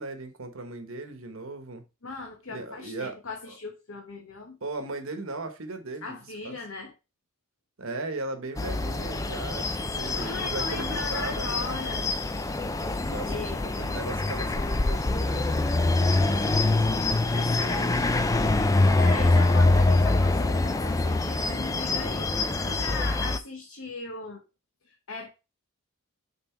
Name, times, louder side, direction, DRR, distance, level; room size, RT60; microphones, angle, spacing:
voice 1, 0.0-1.8 2.5-3.2 3.5-3.6 4.6-6.2 6.4-6.6 7.8-11.5 13.0-17.1, right 2 dB, 65° right, 1.1 m, -38 dB
voice 2, 2.0-4.6 6.0-6.9 9.9-12.1 13.3-13.6 17.3-18.0 18.8-24.4 24.8-25.3, left 3 dB, 60° left, 1.1 m, -38 dB
sound 1, 8.6-23.4, left 2 dB, 15° left, 0.4 m, -25 dB
5.8 x 3.8 x 4.4 m
head